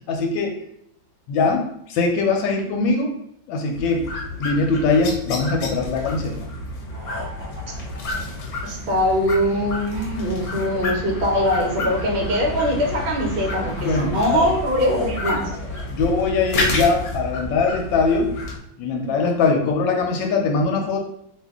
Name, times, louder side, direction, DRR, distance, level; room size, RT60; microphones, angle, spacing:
voice 1, 0.1-0.6 1.3-3.2 3.5-4.1 4.4-6.5 13.8-14.5 15.9-18.3 18.8-21.0, left 4 dB, 85° left, 2 dB, 1.4 m, -21 dB
sound 1, 3.7-18.6, left 2 dB, 60° left, 1.1 m, -30 dB
sound 2, 6.9-9.1 13.2-15.8, left 3 dB, 35° left, 0.4 m, -36 dB
voice 2, 8.6-15.5, equal, 60° right, -1 dB, 0.5 m, -22 dB
2.7 x 2.7 x 3.5 m, 0.73 s
omnidirectional pair, 2.1 m